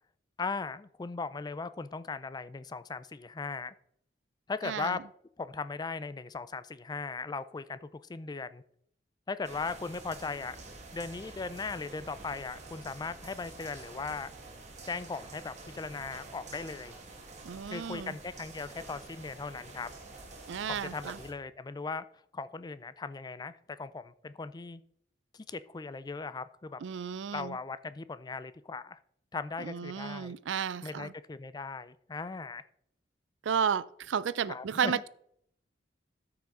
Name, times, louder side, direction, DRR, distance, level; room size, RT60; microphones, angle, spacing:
voice 1, 0.4-3.7 4.5-5.0 5.4-8.6 9.3-10.6 10.9-14.3 14.8-16.9 17.7-19.9 20.7-24.8 25.3-26.8 27.3-29.0 29.3-30.4 30.8-32.7 34.5-35.0, left 4 dB, 20° left, 15 dB, 0.4 m, -38 dB
voice 2, 4.6-5.0 17.4-18.1 20.5-21.2 26.8-27.6 29.6-31.1 33.4-35.1, right 7 dB, 75° right, 19 dB, 0.4 m, -33 dB
sound 1, 9.4-21.3, right 2 dB, 40° right, 1.7 m, -48 dB
13.0 x 5.9 x 3.8 m, 0.69 s
head